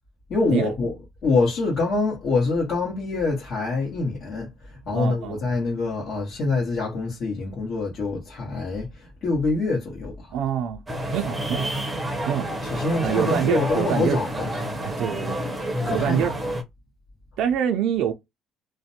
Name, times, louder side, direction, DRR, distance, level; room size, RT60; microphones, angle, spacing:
voice 1, 0.3-0.9 1.2-10.3 12.6-14.5 15.8-16.2, left 3 dB, 50° left, 1.1 m, -25 dB
voice 2, 4.9-5.4 10.3-10.8 11.1-11.7 12.3-12.5 13.0-14.2 14.8-15.4 15.9-16.4 17.4-18.1, right 9 dB, 75° right, 0.4 m, -25 dB
sound 1, 10.9-16.6, equal, 15° right, 0.6 m, -29 dB
2.5 x 2.1 x 2.7 m
cardioid pair, 145°, 0 cm